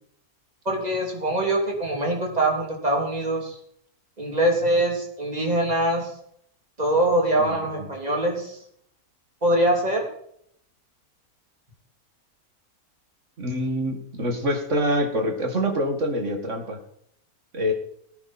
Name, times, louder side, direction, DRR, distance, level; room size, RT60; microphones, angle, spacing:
voice 1, 0.6-3.6 4.2-6.1 6.8-8.6 9.4-10.0, right 1 dB, 25° right, 0 dB, 3.3 m, -23 dB
voice 2, 7.4-7.9 13.4-16.8 17.5-17.7, equal, 50° right, 4 dB, 2.4 m, -26 dB
18.0 x 9.7 x 4.4 m, 0.68 s
omnidirectional pair, 1.6 m